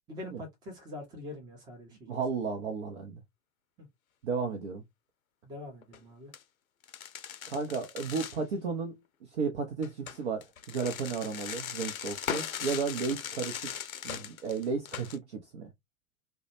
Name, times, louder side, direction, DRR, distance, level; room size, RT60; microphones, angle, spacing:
voice 1, 0.1-2.2 3.8-3.9 5.4-6.3, left 2 dB, 10° right, 0.6 m, -44 dB
voice 2, 2.1-3.2 4.2-4.8 7.5-13.6 14.0-15.7, right 5 dB, 50° right, 0.7 m, -34 dB
sound 1, 5.8-6.0 6.3-6.4 6.8-8.4 9.8-15.2, left 9 dB, 70° left, 0.6 m, -39 dB
2.2 x 2.1 x 3.0 m
figure-of-eight pair, 100°, 44 cm